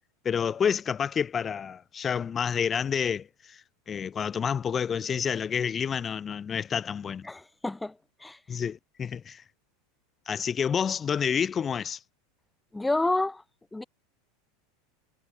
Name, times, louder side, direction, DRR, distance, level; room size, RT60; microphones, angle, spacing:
voice 1, 0.2-7.3 8.5-9.4 10.3-12.0, left 7 dB, 30° left, 7.8 m, -29 dB
voice 2, 7.2-8.6 12.7-13.4 13.7-13.8, left 2 dB, 10° left, 1.5 m, -29 dB
hypercardioid pair, 85°, 0 cm